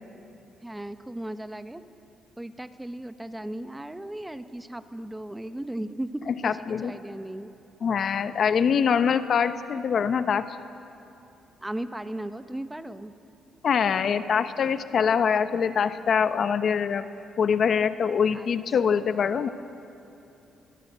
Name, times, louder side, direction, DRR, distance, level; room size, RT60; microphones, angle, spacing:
voice 1, 0.6-1.8 2.4-7.5 11.6-13.1 18.3-18.5 18.9-19.0, right 1 dB, 10° right, 10 dB, 1.0 m, -36 dB
voice 2, 6.4-6.9 7.8-10.5 13.6-17.1 17.4-19.5, left 7 dB, 55° left, 11 dB, 1.0 m, -24 dB
22.5 x 21.5 x 7.5 m, 2.9 s
cardioid pair, 90°, 0 cm